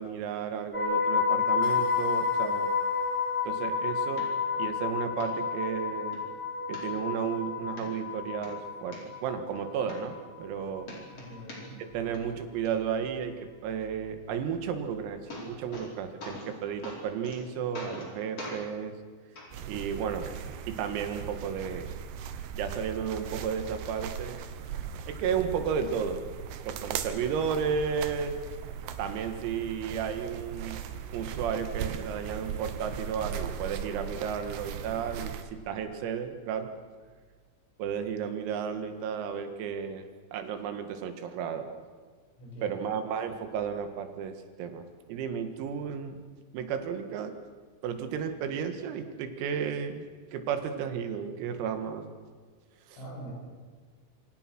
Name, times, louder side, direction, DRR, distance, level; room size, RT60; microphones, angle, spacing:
voice 1, 0.0-2.7 3.5-4.3 4.6-6.2 6.7-10.9 11.9-13.3 13.6-18.9 19.7-20.3 20.7-22.0 22.5-24.4 25.1-26.2 26.7-28.3 29.0-30.8 31.1-36.7 37.8-40.0 40.3-41.8 42.6-46.2 46.5-47.3 47.8-52.1 52.9-53.0, right 7 dB, 85° right, 7 dB, 4.6 m, -33 dB
sound 1, 0.7-10.8 11.1-11.4, left 6 dB, 25° right, 0.6 m, -30 dB
sound 2, 4.2-4.3 4.7-4.8 5.2-5.3 5.8-6.2 6.7-7.3 7.8-7.9 8.3-9.0 9.6-9.7 9.9-10.6 10.8-11.9 12.1-12.7 14.7-14.8 15.1-15.9 16.2-16.5 16.8-17.4 17.7-18.1 18.4-18.6 19.4-19.5 20.4-20.5, left 1 dB, 30° left, 5.4 m, -42 dB
voice 2, 11.1-12.2 42.4-42.8 53.0-53.3, right 1 dB, 75° left, -1 dB, 9.5 m, -44 dB
sound 3, 19.5-35.4, right 8 dB, 70° right, 2.9 m, -38 dB
27.5 x 25.5 x 6.2 m, 1.5 s
omnidirectional pair, 6.0 m